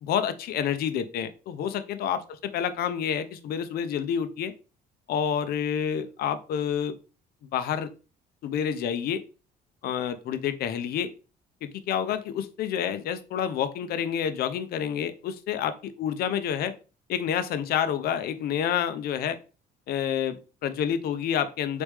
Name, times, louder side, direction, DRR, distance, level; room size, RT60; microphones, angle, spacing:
voice 1, 0.0-4.5 5.1-6.9 7.5-7.9 8.4-9.2 9.8-11.1 11.6-16.7 17.1-19.4 19.9-21.8, left 8 dB, 65° left, 11 dB, 0.6 m, -28 dB
4.1 x 3.2 x 3.4 m, 0.34 s
cardioid pair, 110°, 17 cm